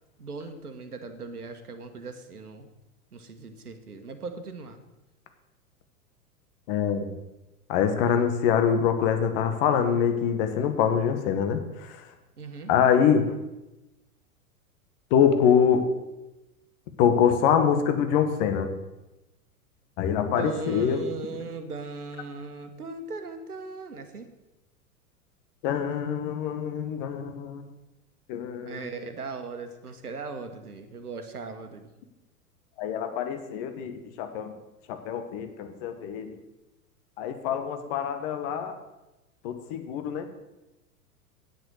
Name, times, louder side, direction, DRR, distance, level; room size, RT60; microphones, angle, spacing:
voice 1, 0.2-2.7 3.1-4.8 12.4-12.7 20.4-24.3 28.6-31.9, right 4 dB, 75° right, 7 dB, 1.5 m, -38 dB
voice 2, 6.7-7.2 7.7-11.9 12.7-13.3 15.1-15.9 17.0-18.7 20.0-21.0 25.6-27.6 28.3-28.8 32.8-34.5 34.9-36.3 37.2-38.7 39.4-40.3, left 7 dB, 40° left, 8 dB, 1.3 m, -24 dB
9.5 x 8.0 x 6.5 m, 1.0 s
figure-of-eight pair, 95°, 45 cm